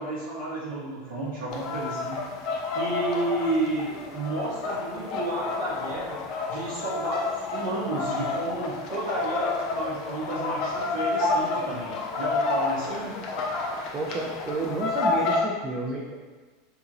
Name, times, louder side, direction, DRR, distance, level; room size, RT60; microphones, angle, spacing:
voice 1, 0.0-2.2 2.7-6.2 6.5-13.2, right 2 dB, 80° right, -9 dB, 0.7 m, -31 dB
sound 1, 1.5-15.4, left 3 dB, 50° left, 0.5 m, -30 dB
voice 2, 13.9-16.2, right 3 dB, 20° right, -3 dB, 0.3 m, -31 dB
2.9 x 2.8 x 2.5 m, 1.4 s
supercardioid pair, 140°, 0 cm